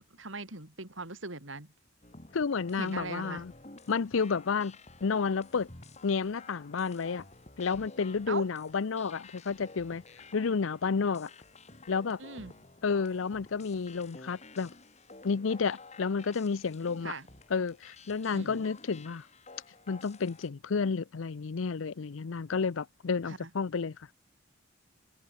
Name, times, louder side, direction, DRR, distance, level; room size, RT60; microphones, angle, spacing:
voice 1, 0.0-1.7 2.8-3.4 8.3-8.5 12.2-12.5 17.0-17.3 18.3-18.6 23.3-23.4, right 3 dB, 70° right, 4.0 m, -40 dB
sound 1, 2.0-20.5, left 3 dB, 35° left, 2.9 m, -52 dB
voice 2, 2.3-3.5 3.9-5.7 6.0-7.2 7.6-10.0 10.3-11.3 11.9-12.2 12.8-14.7 15.2-17.1 17.5-19.2 19.9-24.1, left 5 dB, 75° left, 0.6 m, -31 dB
head